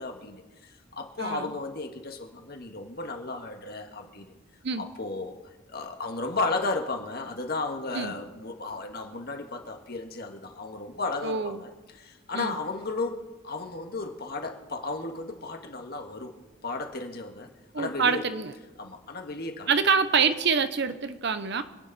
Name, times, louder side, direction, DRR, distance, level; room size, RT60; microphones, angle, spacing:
voice 1, 0.0-4.3 4.8-5.4 5.7-16.3 16.6-17.5 17.8-18.3 18.8-19.7, left 3 dB, 50° left, 3 dB, 1.7 m, -34 dB
voice 2, 1.2-1.5 4.6-4.9 7.9-8.2 11.2-11.6 12.3-12.6 17.7-18.5 19.7-21.6, right 5 dB, 60° right, 11 dB, 0.8 m, -26 dB
26.0 x 9.6 x 4.2 m, 1.2 s
head